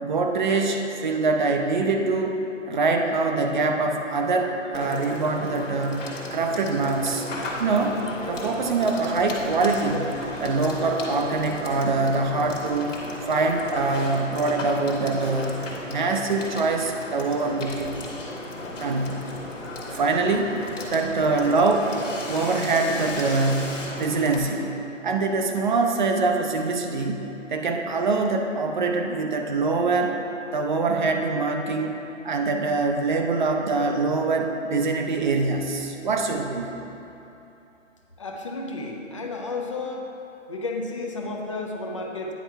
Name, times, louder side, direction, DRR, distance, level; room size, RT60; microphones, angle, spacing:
voice 1, 0.0-2.3 2.7-7.2 7.6-8.0 8.3-13.0 13.2-18.0 18.8-19.3 19.9-20.6 20.9-21.9 22.3-30.2 30.5-32.0 32.2-36.8, right 3 dB, 40° right, 4 dB, 0.6 m, -24 dB
Water / Water tap faucet / Sink (filling or washing), 4.7-24.4, left 2 dB, 70° left, 1.5 m, -36 dB
sound 1, 6.8-24.3, right 1 dB, 85° right, 1.5 m, -42 dB
voice 2, 38.2-40.1 40.5-42.3, left 3 dB, 25° left, 0 dB, 0.4 m, -32 dB
9.3 x 4.4 x 4.4 m, 2.9 s
hypercardioid pair, 150°, 39 cm